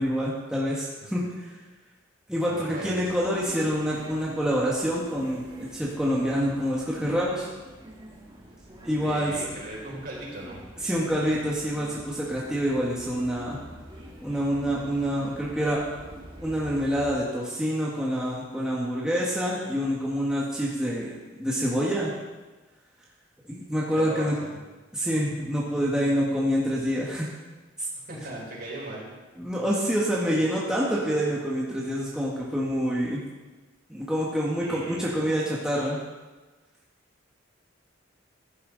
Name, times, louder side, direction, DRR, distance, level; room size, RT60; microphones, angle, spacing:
voice 1, 0.0-1.5 2.3-7.5 8.8-9.3 10.8-13.6 14.2-15.8 16.4-22.1 23.5-24.3 24.9-27.3 27.8-27.9 29.4-33.2 33.9-36.0, equal, 5° right, -6 dB, 1.6 m, -27 dB
voice 2, 2.5-3.0 9.0-10.7 23.9-24.6 28.1-29.1 34.6-35.2, right 1 dB, 50° right, -4 dB, 4.8 m, -38 dB
sound 1, 3.0-17.2, right 1 dB, 25° right, 2.0 m, -45 dB
14.5 x 11.5 x 4.0 m, 1.3 s
head